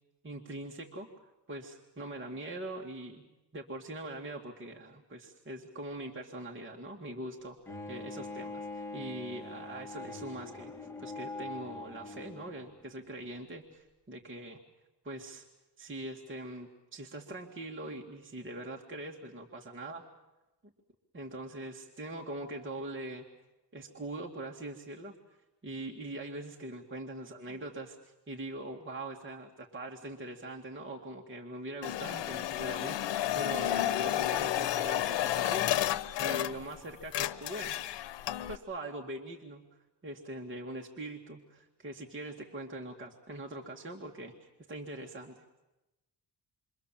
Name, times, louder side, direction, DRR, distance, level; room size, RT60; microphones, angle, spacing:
voice 1, 0.2-3.2 3.5-10.7 11.0-14.6 15.0-15.5 15.8-20.0 21.1-23.3 23.7-25.1 25.6-35.7 36.2-37.8 38.5-39.6 40.0-45.4, right 1 dB, 30° right, 1 dB, 2.2 m, -42 dB
Bowed string instrument, 7.7-12.7, left 3 dB, 5° left, 3.7 m, -43 dB
sound 1, 31.8-36.8 37.0-38.6, left 13 dB, 80° left, 1.0 m, -31 dB
27.5 x 24.5 x 7.6 m, 1.0 s
cardioid pair, 110°, 42 cm